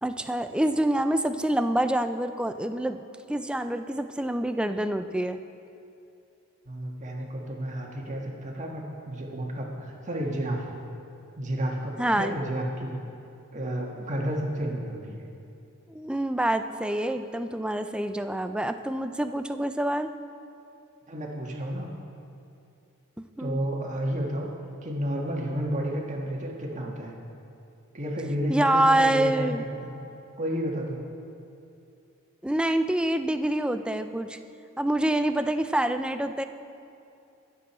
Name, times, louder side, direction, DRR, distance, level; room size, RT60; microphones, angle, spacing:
voice 1, 0.0-3.0 3.3-5.4 12.0-12.4 15.9-20.1 23.4-23.6 28.5-29.6 32.4-34.4 34.8-36.4, right 1 dB, 5° right, 9 dB, 0.4 m, -26 dB
voice 2, 6.6-10.7 11.4-13.0 13.5-15.2 21.1-21.9 23.4-24.5 24.8-27.2 27.9-30.0 30.4-31.0, equal, 35° right, 0 dB, 1.6 m, -31 dB
21.5 x 7.6 x 4.3 m, 2.7 s
head